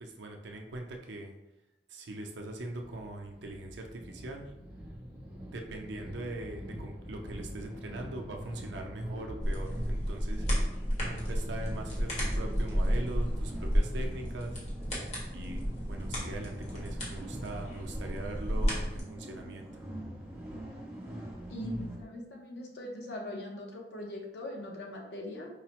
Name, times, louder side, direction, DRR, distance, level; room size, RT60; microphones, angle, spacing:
voice 1, 0.0-1.3 1.9-4.5 5.5-10.5 11.0-14.6 15.3-15.6 15.9-19.7, right 2 dB, 90° right, 2 dB, 0.5 m, -41 dB
sound 1, 2.7-22.0, equal, 15° right, 0.6 m, -44 dB
sound 2, 9.4-19.0, equal, 40° left, 1.1 m, -32 dB
voice 2, 21.5-25.5, left 1 dB, 75° left, 0 dB, 0.7 m, -41 dB
4.7 x 2.0 x 2.9 m, 0.93 s
head